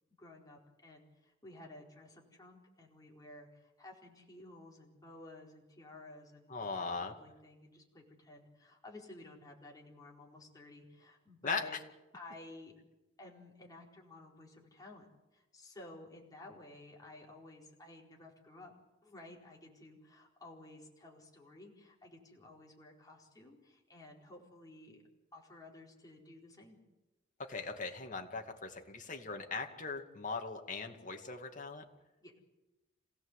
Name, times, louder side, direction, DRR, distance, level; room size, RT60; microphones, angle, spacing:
voice 1, 0.2-11.8 12.1-12.7 13.2-18.7 19.0-25.0 25.3-26.8 32.2-32.3, left 2 dB, 20° left, -1 dB, 4.6 m, -54 dB
voice 2, 6.5-7.1 11.4-11.7 27.4-31.8, left 4 dB, 40° left, 4 dB, 2.3 m, -39 dB
26.5 x 17.0 x 8.2 m, 1.0 s
head